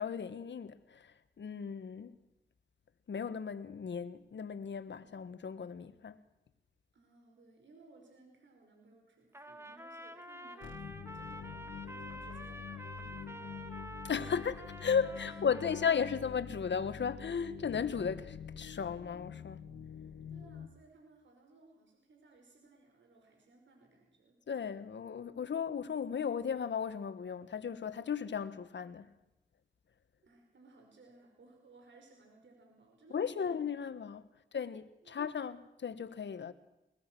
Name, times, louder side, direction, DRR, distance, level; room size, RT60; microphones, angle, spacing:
voice 1, 0.0-2.1 3.1-6.2 14.0-14.5 14.8-19.6 24.5-29.1 33.1-34.2 34.5-36.5, left 6 dB, 65° left, 1.6 m, -35 dB
voice 2, 6.9-14.5 15.0-16.2 20.3-24.4 30.2-33.9 34.3-34.4 35.0-35.2, right 3 dB, 70° right, 5.3 m, -61 dB
Trumpet, 9.3-16.1, right 1 dB, 15° right, 2.3 m, -48 dB
sound 1, 10.6-20.7, left 7 dB, 85° left, 1.7 m, -46 dB
21.5 x 21.0 x 6.3 m
cardioid pair, 65°, 20 cm